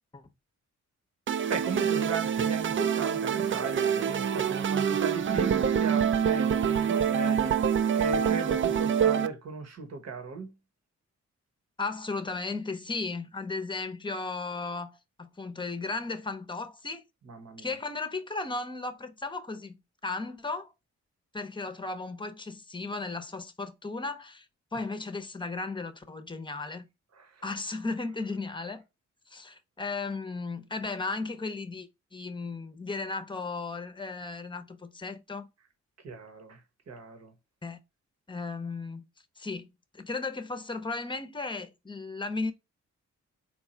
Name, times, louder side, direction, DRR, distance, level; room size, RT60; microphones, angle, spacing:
sound 1, 1.3-9.3, right 8 dB, 45° right, 0.4 m, -26 dB
voice 1, 1.5-7.5 7.9-10.5 17.3-17.7 27.2-27.3 36.0-36.6 36.9-37.3, right 4 dB, 60° right, 1.2 m, -36 dB
voice 2, 11.8-17.0 17.6-20.7 21.3-26.9 27.4-28.8 29.3-35.5 37.6-37.8 38.3-39.0 39.4-42.5, left 3 dB, 15° left, 0.7 m, -35 dB
4.5 x 2.3 x 4.3 m
cardioid pair, 80°, 29 cm